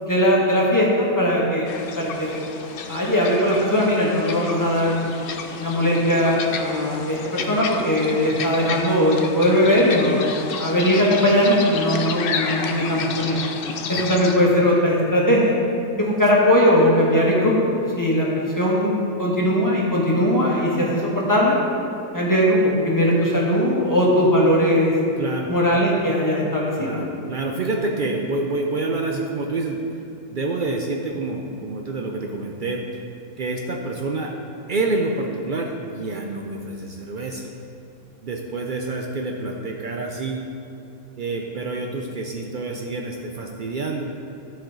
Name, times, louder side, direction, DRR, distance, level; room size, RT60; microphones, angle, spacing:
voice 1, 0.0-2.4 2.9-5.0 5.6-10.2 10.6-13.4 13.9-15.5 16.0-17.7 18.0-21.6 22.1-24.9 25.5-27.0, equal, 15° left, -5 dB, 1.2 m, -19 dB
sound 1, 1.7-14.4, left 5 dB, 75° left, 0.5 m, -31 dB
voice 2, 25.2-25.5 26.8-29.8 30.3-33.0 33.4-34.3 34.7-37.5 38.2-40.4 41.2-44.0, right 3 dB, 90° right, 1 dB, 0.4 m, -27 dB
13.0 x 4.4 x 3.9 m, 2.7 s
omnidirectional pair, 1.6 m